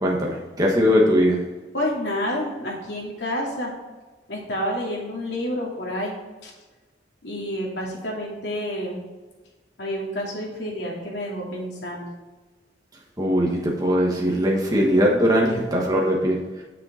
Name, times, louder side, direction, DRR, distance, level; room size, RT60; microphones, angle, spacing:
voice 1, 0.0-1.4 13.2-16.4, equal, 20° right, -3 dB, 1.4 m, -20 dB
voice 2, 1.7-3.7 4.3-6.5 7.2-9.0 9.8-12.0, equal, 80° left, -3 dB, 2.6 m, -29 dB
7.7 x 6.7 x 4.3 m, 1.2 s
head